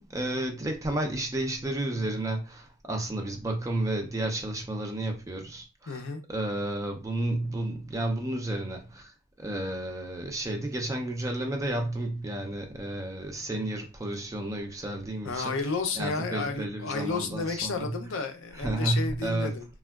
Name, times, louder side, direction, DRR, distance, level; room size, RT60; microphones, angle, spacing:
voice 1, 0.0-6.0 6.3-15.6 15.9-17.9 18.5-19.5, right 1 dB, 15° right, 0.3 m, -32 dB
voice 2, 5.9-6.2 15.2-19.7, left 4 dB, 60° left, 0.5 m, -32 dB
3.5 x 2.1 x 2.2 m
head